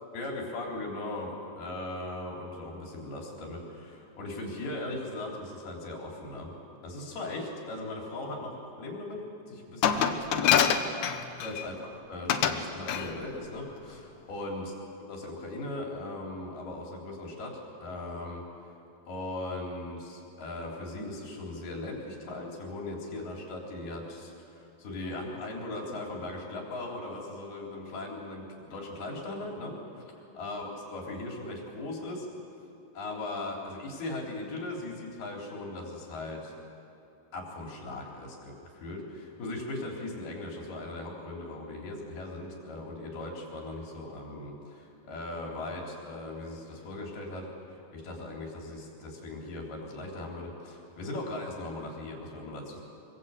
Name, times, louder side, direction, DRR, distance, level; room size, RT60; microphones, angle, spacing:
voice 1, 0.1-6.6 6.8-10.6 11.4-14.7 15.1-18.4 19.1-30.0 30.4-32.3 33.0-36.5 37.3-52.8, left 2 dB, 90° left, -1 dB, 5.7 m, -38 dB
Glass, 9.8-11.7 12.3-12.6 12.9-13.1, left 8 dB, 65° left, 2.1 m, -25 dB
24.5 x 23.5 x 8.3 m, 2.8 s
omnidirectional pair, 4.3 m